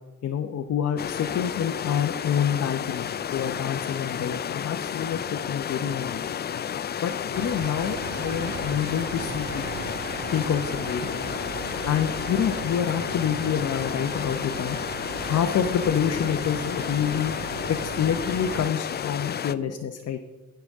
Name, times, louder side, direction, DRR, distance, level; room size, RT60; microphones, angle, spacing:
voice 1, 0.2-6.3 7.0-9.6 10.3-11.3 11.9-14.8 15.2-17.3 17.7-20.2, left 8 dB, 55° left, 5 dB, 0.9 m, -27 dB
sound 1, 1.0-19.5, left 8 dB, 35° left, 0.4 m, -32 dB
sound 2, 7.3-18.7, right 10 dB, 45° right, 0.4 m, -38 dB
16.5 x 7.0 x 3.6 m, 1.1 s
cardioid pair, 90°, 30 cm